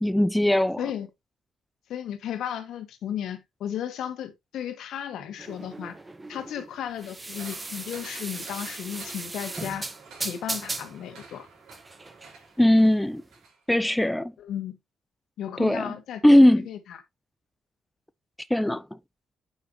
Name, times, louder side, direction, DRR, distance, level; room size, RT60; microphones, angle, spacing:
voice 1, 0.0-0.8 12.6-13.2 13.7-14.3 15.6-15.9 16.2-16.7 18.5-18.8, left 1 dB, 5° left, 0.4 m, -19 dB
voice 2, 1.9-5.9 6.3-9.9 10.2-11.5 14.4-14.8 15.4-16.4 16.7-17.0, left 10 dB, 75° left, 1.7 m, -34 dB
tooth brush, 5.4-13.4, right 2 dB, 20° right, 1.1 m, -37 dB
sound 1, 7.3-13.6 13.9-14.0, right 4 dB, 80° right, 5.0 m, -49 dB
9.0 x 5.6 x 3.0 m
cardioid pair, 90°, 0 cm